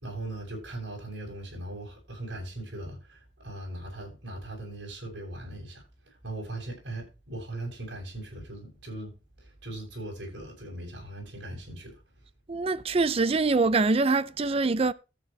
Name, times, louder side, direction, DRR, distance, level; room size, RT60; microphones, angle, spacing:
voice 1, 0.0-5.9 6.2-12.0, right 2 dB, 90° right, 7.9 m, -39 dB
voice 2, 12.5-14.9, right 3 dB, 35° right, 0.5 m, -24 dB
13.5 x 9.1 x 3.3 m
head